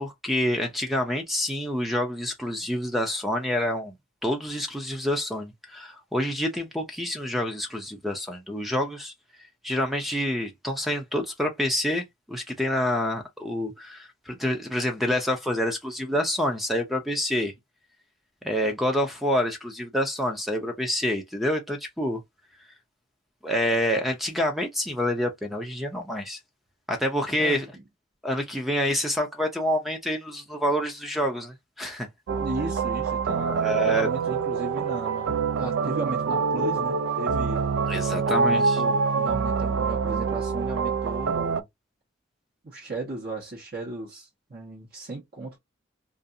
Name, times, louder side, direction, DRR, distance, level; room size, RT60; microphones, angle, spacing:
voice 1, 0.0-3.9 4.2-9.1 9.6-17.5 18.4-22.2 23.4-26.4 26.9-27.7 28.2-32.1 33.5-34.1 37.9-38.8, equal, ahead, 0.5 m, -27 dB
voice 2, 27.4-27.8 32.4-37.6 38.3-41.6 42.6-45.6, right 2 dB, 50° right, 1.0 m, -35 dB
sound 1, 32.3-41.6, right 5 dB, 80° right, 0.3 m, -26 dB
2.5 x 2.4 x 2.6 m
head